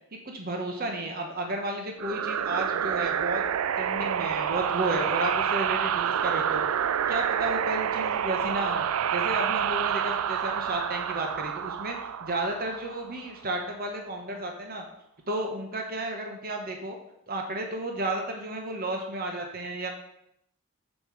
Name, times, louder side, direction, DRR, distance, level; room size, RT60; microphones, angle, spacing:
voice 1, 0.1-3.4 3.8-6.6 7.1-14.8 15.3-17.0 17.3-19.9, right 1 dB, 45° right, 2 dB, 1.3 m, -32 dB
sound 1, 2.0-13.3, right 8 dB, 85° right, 0.4 m, -28 dB
7.8 x 7.2 x 5.0 m, 0.76 s
head